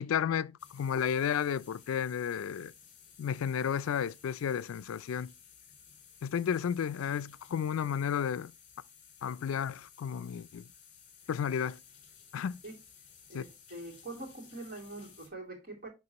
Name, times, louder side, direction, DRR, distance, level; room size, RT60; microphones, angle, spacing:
voice 1, 0.0-2.7 3.2-5.3 6.2-8.5 9.2-10.6 11.3-11.8 12.3-12.6 13.3-13.4, left 8 dB, 85° left, 0.3 m, -32 dB
sound 1, 0.6-15.3, left 7 dB, 35° left, 2.2 m, -57 dB
voice 2, 13.3-15.9, right 2 dB, 45° right, 2.6 m, -44 dB
11.0 x 3.7 x 2.9 m
head